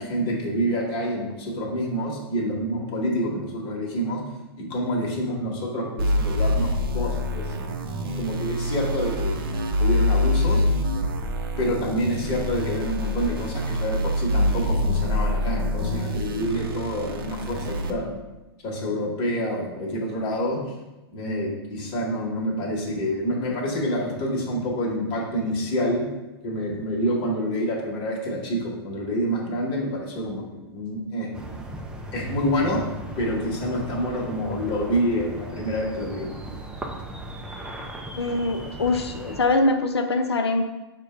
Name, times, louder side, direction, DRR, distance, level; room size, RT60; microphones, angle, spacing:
voice 1, 0.0-4.2 4.6-7.6 8.1-9.5 9.8-10.6 11.6-18.1 18.6-20.6 21.1-26.0 26.4-31.3 32.1-32.8 33.2-36.3, equal, 35° left, -1 dB, 1.2 m, -27 dB
sound 1, 6.0-17.9, left 1 dB, 60° right, 0.6 m, -25 dB
sound 2, 31.3-39.4, right 1 dB, 5° right, 0.4 m, -37 dB
voice 2, 38.2-40.6, left 2 dB, 90° left, 7 dB, 0.5 m, -23 dB
4.9 x 2.2 x 4.8 m, 1.1 s
hypercardioid pair, 115°, 13 cm